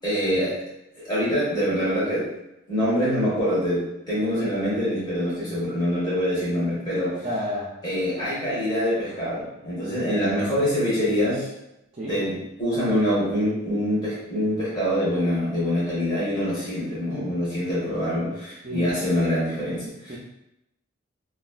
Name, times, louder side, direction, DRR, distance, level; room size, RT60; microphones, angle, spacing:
voice 1, 0.0-0.6 0.9-2.3 2.7-7.3 7.8-11.5 12.1-20.2, equal, 20° left, -9 dB, 1.4 m, -25 dB
voice 2, 7.2-7.7 11.9-12.1 18.6-18.9 20.1-20.2, left 1 dB, 30° right, -6 dB, 0.4 m, -30 dB
3.1 x 2.3 x 2.4 m, 0.87 s
head